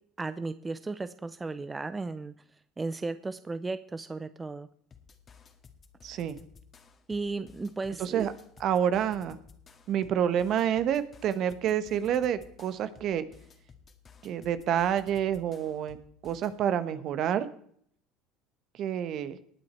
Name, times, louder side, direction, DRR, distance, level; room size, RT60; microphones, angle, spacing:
voice 1, 0.2-2.3 2.8-4.7 7.1-8.3, right 3 dB, 20° right, 13 dB, 0.6 m, -35 dB
sound 1, 4.9-16.6, left 6 dB, 35° left, 2.0 m, -56 dB
voice 2, 6.0-6.4 8.0-8.3 8.6-9.4 9.9-13.2 14.2-16.0 16.2-17.5 18.8-19.4, right 9 dB, 55° right, 13 dB, 1.2 m, -28 dB
19.5 x 8.7 x 4.5 m, 0.63 s
hypercardioid pair, 70°, 0 cm